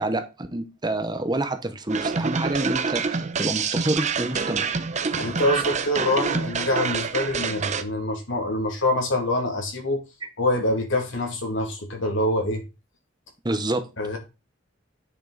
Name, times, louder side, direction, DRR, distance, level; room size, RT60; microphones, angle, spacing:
voice 1, 0.0-4.8 13.4-13.8, right 1 dB, 25° right, 1.0 m, -28 dB
sound 1, 1.9-7.8, right 5 dB, 40° right, 0.7 m, -27 dB
voice 2, 5.1-10.0 10.4-12.6 14.0-14.2, left 1 dB, 80° left, 2.5 m, -25 dB
9.3 x 5.6 x 4.0 m
head